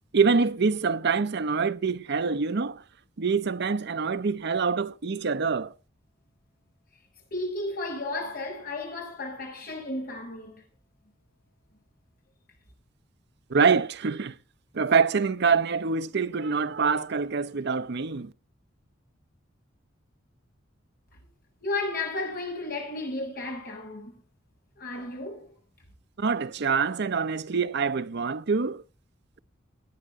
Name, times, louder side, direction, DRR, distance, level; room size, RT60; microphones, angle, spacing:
voice 1, 0.1-2.8 3.2-5.7 13.5-14.3 14.7-18.3 26.2-28.8, right 5 dB, 60° right, 0.7 m, -25 dB
voice 2, 7.3-10.6 21.6-24.2 24.8-25.5, left 2 dB, 50° left, 6.5 m, -33 dB
18.5 x 10.0 x 3.6 m
head